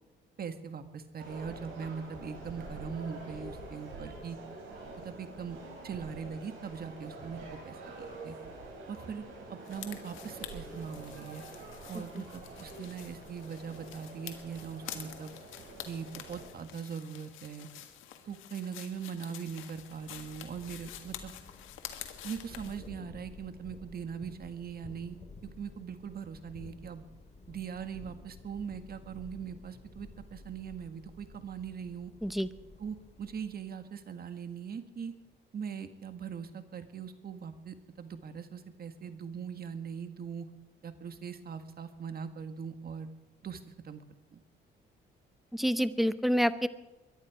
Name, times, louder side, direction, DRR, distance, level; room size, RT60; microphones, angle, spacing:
voice 1, 0.4-4.4 5.0-5.6 5.8-7.9 8.2-8.3 8.9-9.2 9.5-11.4 11.9-15.3 15.8-17.7 18.2-21.3 22.2-25.2 25.4-27.0 27.5-32.1 32.8-35.1 35.5-40.5 40.8-43.1 43.4-44.0 44.3-44.4, right 7 dB, 50° right, 9 dB, 1.7 m, -41 dB
sound 1, 1.2-16.5, right 2 dB, 85° right, 6.4 m, -46 dB
sound 2, 9.6-22.9, left 11 dB, 90° left, 1.7 m, -48 dB
Thunder / Rain, 19.7-33.7, left 3 dB, 35° left, 2.2 m, -52 dB
voice 2, 45.5-46.7, equal, ahead, 14 dB, 0.8 m, -27 dB
22.5 x 11.0 x 5.0 m, 1.1 s
cardioid pair, 90°, 20 cm